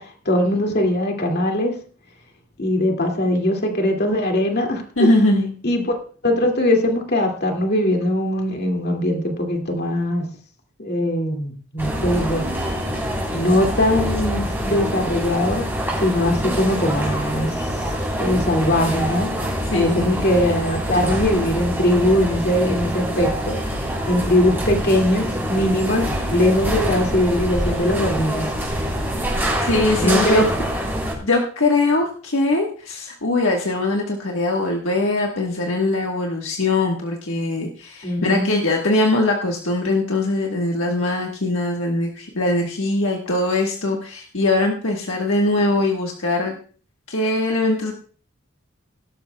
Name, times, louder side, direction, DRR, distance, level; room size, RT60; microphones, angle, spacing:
voice 1, 0.0-1.7 2.6-5.1 5.6-6.0 6.2-10.3 10.8-12.5 13.3-15.7 16.0-17.6 17.8-17.9 18.2-19.3 19.7-23.7 24.1-28.5 30.0-30.4 38.0-38.6, left 1 dB, 50° left, 2 dB, 2.3 m, -21 dB
voice 2, 5.0-5.5 19.7-20.3 29.6-30.4 31.2-46.6 47.1-47.9, left 2 dB, 70° left, 0 dB, 1.4 m, -21 dB
sound 1, 11.8-31.1, equal, 10° right, 3.7 m, -25 dB
18.5 x 12.0 x 2.3 m, 0.41 s
head